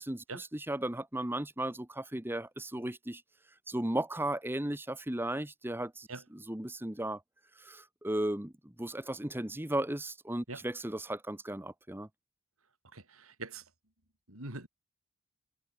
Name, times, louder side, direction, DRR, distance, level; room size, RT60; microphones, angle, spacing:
voice 1, 0.0-3.2 3.7-6.1 6.3-7.2 7.6-12.1, right 1 dB, 10° right, 1.0 m, -35 dB
voice 2, 12.9-13.6 14.3-14.7, right 3 dB, 85° right, 5.5 m, -43 dB
head